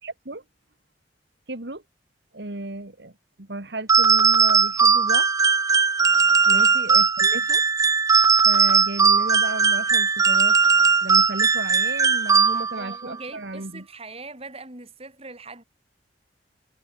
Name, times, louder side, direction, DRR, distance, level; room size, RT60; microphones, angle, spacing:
voice 1, 0.0-0.4 1.5-1.8 2.3-3.1 3.4-5.3 6.5-7.6 8.4-10.6 11.0-13.8, right 2 dB, 65° right, 2.2 m, -34 dB
sound 1, 3.9-12.9, right 5 dB, 20° right, 0.4 m, -18 dB
voice 2, 12.5-15.6, right 3 dB, 35° right, 5.7 m, -41 dB
head